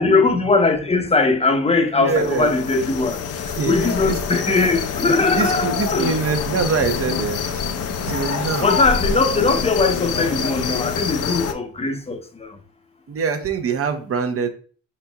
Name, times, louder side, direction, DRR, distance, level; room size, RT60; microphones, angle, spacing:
voice 1, 0.0-3.2 3.6-6.2 8.6-12.6, left 3 dB, 20° left, 0.8 m, -20 dB
voice 2, 1.9-2.5 3.6-4.2 5.3-7.6 8.1-8.7 13.1-14.5, right 5 dB, 50° right, 0.8 m, -24 dB
sound 1, 2.1-11.5, left 6 dB, 55° left, 0.6 m, -26 dB
5.2 x 4.3 x 2.3 m
cardioid pair, 90°, 30 cm